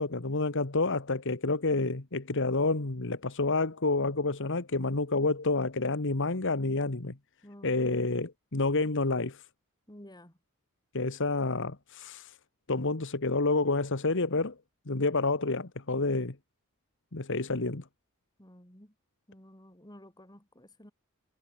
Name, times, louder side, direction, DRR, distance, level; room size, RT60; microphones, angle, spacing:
voice 1, 0.0-7.2 7.6-9.4 10.9-12.3 12.7-14.5 14.9-16.3 17.1-17.8, left 3 dB, 60° left, 1.6 m, -29 dB
voice 2, 7.4-7.9 9.9-10.3 18.4-18.9 19.3-20.9, equal, 20° left, 7.4 m, -52 dB
head